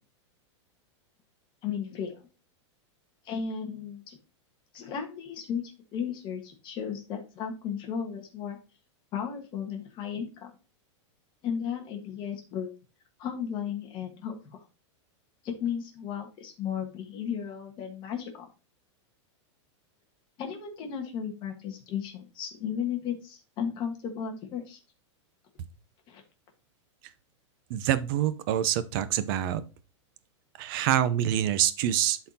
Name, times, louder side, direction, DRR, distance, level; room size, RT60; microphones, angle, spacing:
voice 1, 1.6-2.1 3.2-4.2 4.7-5.6 5.9-8.6 9.1-10.5 11.4-12.7 13.2-14.6 15.4-18.3 20.4-24.8 26.1-26.2, left 7 dB, 30° left, 3 dB, 1.4 m, -34 dB
voice 2, 27.7-29.6 30.6-32.2, right 11 dB, 45° right, 14 dB, 0.7 m, -26 dB
12.0 x 4.1 x 2.8 m, 0.32 s
supercardioid pair, 160°, 16 cm